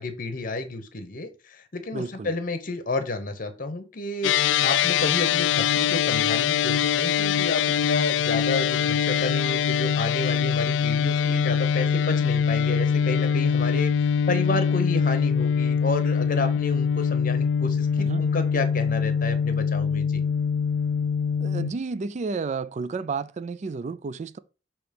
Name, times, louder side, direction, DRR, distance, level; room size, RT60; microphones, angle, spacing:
voice 1, 0.0-13.9 14.3-20.2, left 2 dB, 50° left, 0.9 m, -31 dB
voice 2, 1.9-2.3 18.0-18.3 21.4-24.4, right 4 dB, 40° right, 0.3 m, -31 dB
sound 1, 4.2-21.7, left 7 dB, 85° left, 0.3 m, -23 dB
6.2 x 3.0 x 5.1 m
head